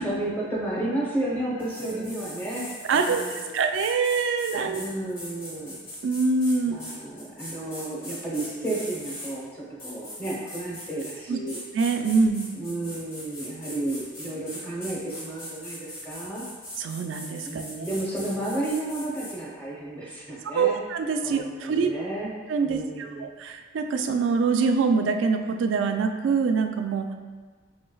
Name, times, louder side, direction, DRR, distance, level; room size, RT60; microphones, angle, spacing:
voice 1, 0.0-3.6 4.7-5.8 6.6-11.6 12.5-16.5 17.4-20.8 21.2-22.3 22.6-23.3, right 2 dB, 10° left, -6 dB, 0.8 m, -32 dB
sound 1, 1.6-9.3 9.8-11.2 11.5-19.4, left 1 dB, 80° left, 1.5 m, -40 dB
voice 2, 2.9-4.8 6.0-6.7 11.3-11.4 11.7-12.5 16.8-17.6 20.5-21.9 22.5-27.1, right 4 dB, 65° right, 5 dB, 0.3 m, -24 dB
4.4 x 3.1 x 2.3 m, 1.4 s
head